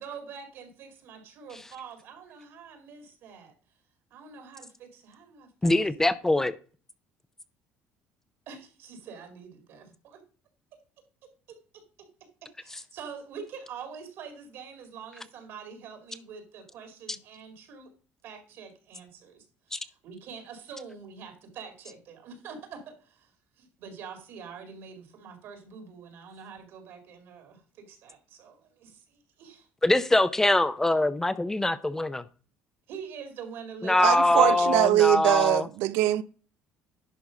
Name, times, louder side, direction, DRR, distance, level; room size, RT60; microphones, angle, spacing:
voice 1, 0.0-3.5 4.1-5.8 8.5-10.2 10.7-10.8 11.5-12.1 12.4-17.9 18.2-29.7 32.9-34.7, right 6 dB, 65° right, 2.2 m, -45 dB
voice 2, 5.6-6.5 19.7-19.8 29.8-32.2 33.8-35.7, left 2 dB, 10° left, 0.6 m, -23 dB
voice 3, 34.0-36.2, right 15 dB, 85° right, 0.5 m, -23 dB
11.0 x 4.1 x 5.1 m
cardioid pair, 115°, 4 cm